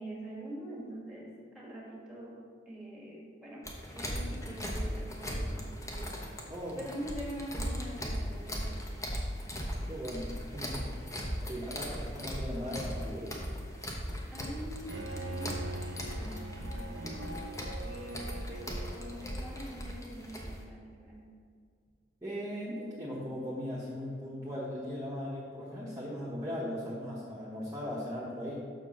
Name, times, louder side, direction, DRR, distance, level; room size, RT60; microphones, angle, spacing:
voice 1, 0.0-3.7 3.9-6.1 6.7-8.8 14.3-15.6 15.9-16.3 16.6-17.2 17.8-21.3, right 1 dB, 5° right, -4 dB, 1.7 m, -44 dB
sound 1, 3.6-20.6, equal, 15° left, 0.9 m, -38 dB
voice 2, 6.5-6.8 9.9-11.0 11.5-13.3 16.2-16.4 22.2-28.7, equal, 20° right, -8 dB, 1.1 m, -38 dB
Bowed string instrument, 14.9-19.7, right 1 dB, 85° right, 0.8 m, -42 dB
6.3 x 4.5 x 6.1 m, 2.1 s
head